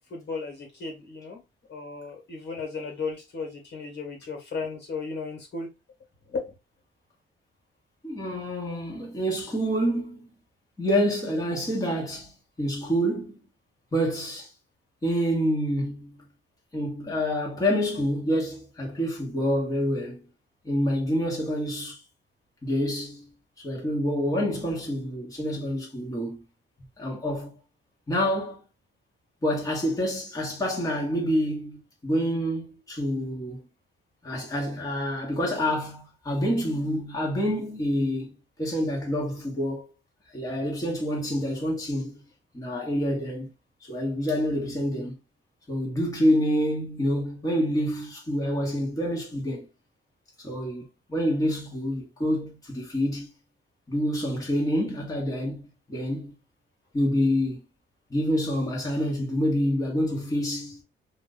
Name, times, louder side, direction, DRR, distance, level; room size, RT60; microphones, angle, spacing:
voice 1, 0.1-1.4 1.7-5.7 6.3-6.5, left 4 dB, 60° left, 1.7 m, -35 dB
voice 2, 8.0-10.3 10.8-12.3 12.6-13.4 13.9-14.5 15.0-16.2 16.7-20.3 20.6-22.0 22.6-23.3 23.6-26.4 27.0-27.6 28.1-28.6 29.4-33.7 34.2-39.9 40.3-42.2 42.5-43.5 43.8-45.2 45.7-49.7 50.4-53.3 53.9-56.3 56.9-57.6 58.1-60.8, equal, 15° left, 1.3 m, -27 dB
2.6 x 2.6 x 3.8 m
cardioid pair, 90°, 20 cm